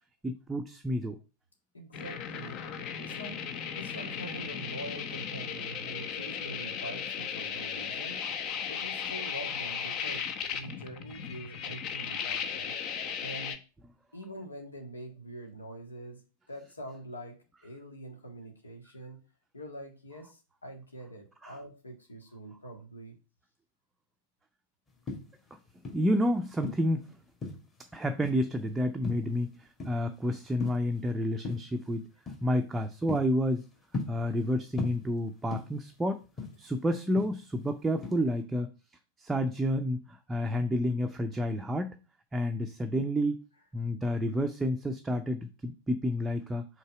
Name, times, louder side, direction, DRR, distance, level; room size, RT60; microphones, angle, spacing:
voice 1, 0.2-1.2 21.4-21.5 25.9-27.1 27.9-32.1 32.4-33.6 34.1-36.2 36.6-38.7 39.2-41.9 42.3-43.4 43.7-46.6, equal, 10° right, 6 dB, 0.6 m, -30 dB
voice 2, 1.7-12.7 13.2-13.6 14.1-19.2 19.5-23.2, right 1 dB, 75° left, 3 dB, 1.7 m, -45 dB
sound 1, 1.9-13.6, left 7 dB, 35° left, 0.8 m, -36 dB
sound 2, 24.9-26.2 26.6-27.8 28.2-28.6 29.0-30.2 30.4-31.0 31.4-31.8 32.3-32.5 32.8-34.5 34.8-35.9 36.2-37.7 38.0-38.4, left 3 dB, 20° left, 2.1 m, -38 dB
5.5 x 3.9 x 5.8 m, 0.33 s
figure-of-eight pair, 90°, 0 cm